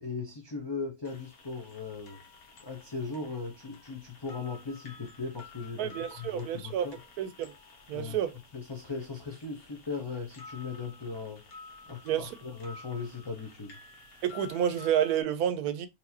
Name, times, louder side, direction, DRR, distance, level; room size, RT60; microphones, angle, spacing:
voice 1, 0.0-2.2 2.6-7.0 7.9-8.2 8.5-11.4 11.9-13.8, left 4 dB, 40° left, 0.3 m, -38 dB
sound 1, 1.0-15.2, left 3 dB, 75° left, 1.3 m, -52 dB
voice 2, 5.8-6.9 7.2-7.5 7.9-8.3 12.0-12.4 14.2-15.9, right 10 dB, 90° right, 1.2 m, -29 dB
4.2 x 2.6 x 2.7 m
omnidirectional pair, 1.5 m